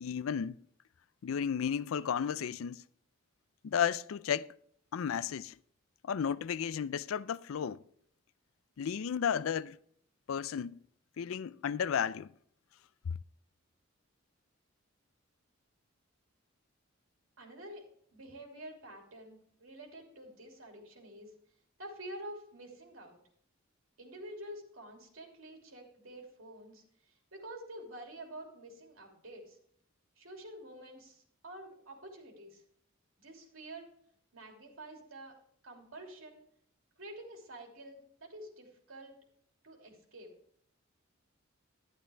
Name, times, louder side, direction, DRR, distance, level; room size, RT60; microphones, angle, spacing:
voice 1, 0.0-0.6 1.2-2.8 3.6-4.5 4.9-5.6 6.0-7.8 8.8-9.8 10.3-10.8 11.2-12.3 13.1-13.2, left 7 dB, 80° left, 0.4 m, -33 dB
voice 2, 17.4-17.8 18.1-21.3 21.8-23.2 24.0-29.6 30.2-32.6 33.2-33.9 34.3-35.3 35.6-36.4 37.0-39.1 39.6-40.3, right 1 dB, 90° right, 2.9 m, -48 dB
12.0 x 11.0 x 3.4 m
head